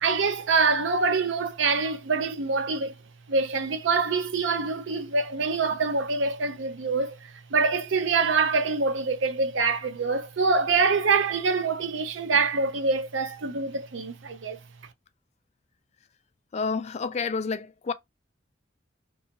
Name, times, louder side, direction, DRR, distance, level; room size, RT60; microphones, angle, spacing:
voice 1, 0.0-2.9 3.3-7.2 7.5-14.6, right 4 dB, 80° right, 0.5 m, -25 dB
voice 2, 16.5-17.9, left 4 dB, 35° left, 0.3 m, -29 dB
2.7 x 2.3 x 2.7 m
head